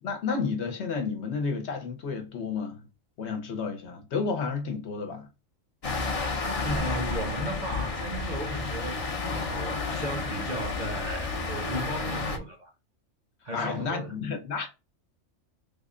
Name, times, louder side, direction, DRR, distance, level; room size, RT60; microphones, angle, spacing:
voice 1, 0.0-2.9 3.2-5.3 13.5-14.7, left 5 dB, 65° left, 0.9 m, -31 dB
sound 1, 5.8-12.4, left 3 dB, 40° left, 0.5 m, -31 dB
voice 2, 6.6-12.7 13.4-14.1, right 1 dB, 40° right, 0.7 m, -35 dB
3.5 x 2.1 x 3.6 m
omnidirectional pair, 1.3 m